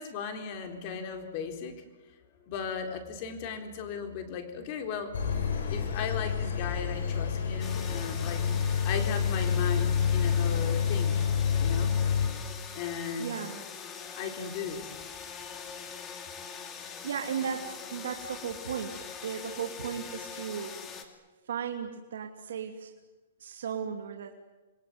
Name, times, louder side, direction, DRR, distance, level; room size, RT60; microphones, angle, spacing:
voice 1, 0.0-1.8 2.5-5.1 5.7-8.4 8.8-11.2 11.6-11.9 12.7-13.3 14.1-14.9, left 6 dB, 35° left, 6 dB, 3.9 m, -36 dB
Engine, 5.1-12.3, left 7 dB, 75° left, 6.8 m, -28 dB
sound 1, 7.6-21.0, left 6 dB, 20° left, 2.5 m, -43 dB
voice 2, 13.2-13.6 16.6-20.7 21.4-22.9 23.4-24.3, right 7 dB, 75° right, 2 dB, 2.8 m, -36 dB
28.0 x 22.0 x 9.6 m, 1.2 s
hypercardioid pair, 165°, 0 cm